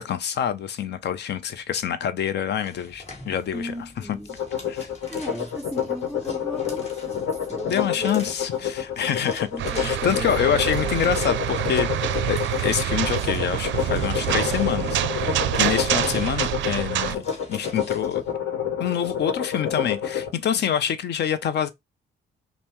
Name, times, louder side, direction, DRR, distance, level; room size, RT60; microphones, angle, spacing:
voice 1, 0.0-3.7 4.1-4.2 4.7-4.9 7.7-9.5 9.7-17.2 17.5-18.2 18.8-21.7, left 9 dB, 60° left, 0.5 m, -26 dB
sound 1, 2.6-18.3, left 2 dB, 35° left, 1.6 m, -46 dB
voice 2, 3.5-4.4 5.1-8.3 9.2-9.3 9.5-11.2, equal, ahead, 0.3 m, -37 dB
sound 2, 4.3-20.3, left 8 dB, 80° left, 1.0 m, -28 dB
sound 3, 9.6-17.2, right 12 dB, 70° right, 0.4 m, -26 dB
5.3 x 2.0 x 2.9 m
cardioid pair, 90°, 20 cm